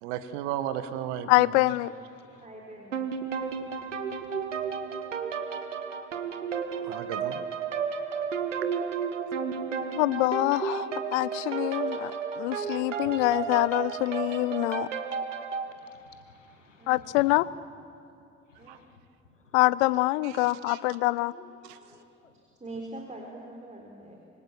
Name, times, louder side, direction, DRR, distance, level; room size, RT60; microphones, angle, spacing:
voice 1, 0.0-1.7 6.8-7.5 18.7-18.8 20.2-20.8 21.6-21.8, right 11 dB, 70° right, 11 dB, 1.3 m, -35 dB
voice 2, 1.3-1.9 10.0-12.1 12.4-14.9 16.9-17.4 19.5-21.3, left 19 dB, 70° left, 19 dB, 0.7 m, -25 dB
voice 3, 1.9-2.5 3.3-4.9 8.2-8.5 9.3-9.7 13.0-13.1 15.6-17.3 18.5-19.0 19.3-19.6 21.3-22.4, left 4 dB, 90° left, 7 dB, 1.5 m, -56 dB
voice 4, 2.4-3.0 16.8-17.2 18.6-18.8 22.0-22.1 22.3-24.2, right 2 dB, 20° right, 1 dB, 4.1 m, -43 dB
sound 1, 2.9-15.7, right 6 dB, 85° right, 1.1 m, -32 dB
26.0 x 24.0 x 7.4 m, 2.5 s
figure-of-eight pair, 50°, 36 cm